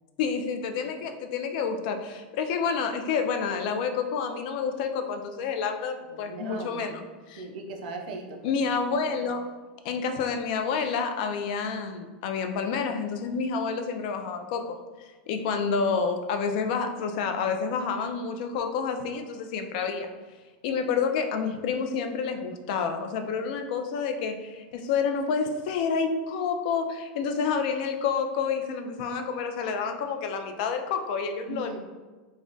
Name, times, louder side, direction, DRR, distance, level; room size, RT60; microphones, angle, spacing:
voice 1, 0.2-7.4 8.4-9.4 9.8-20.1 20.6-31.8, left 5 dB, 55° left, 6 dB, 0.3 m, -29 dB
voice 2, 6.1-6.9 7.4-8.6 31.5-31.8, right 3 dB, 65° right, 3 dB, 0.5 m, -38 dB
2.3 x 2.1 x 3.7 m, 1.3 s
supercardioid pair, 160°, 5 cm